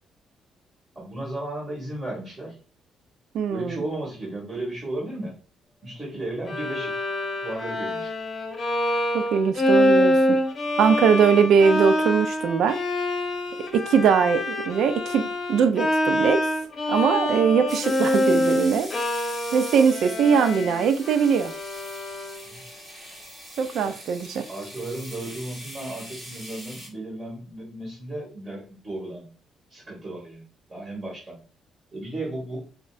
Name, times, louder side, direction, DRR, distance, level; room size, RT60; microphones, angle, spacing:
voice 1, 1.0-2.6 3.5-5.4 5.8-7.0 7.4-8.1 22.4-22.6 23.6-24.0 24.5-29.3 29.7-31.4 31.9-32.6, right 1 dB, 25° right, 1.9 m, -34 dB
voice 2, 3.3-3.8 9.1-10.4 10.8-12.8 13.7-16.4 16.9-18.9 19.5-21.5 23.6-24.5, right 6 dB, 75° right, 0.4 m, -21 dB
Bowed string instrument, 6.5-22.5, left 1 dB, 40° left, 0.8 m, -25 dB
sound 1, 17.7-26.9, equal, 10° right, 1.5 m, -42 dB
5.3 x 2.1 x 2.4 m
cardioid pair, 90°, 0 cm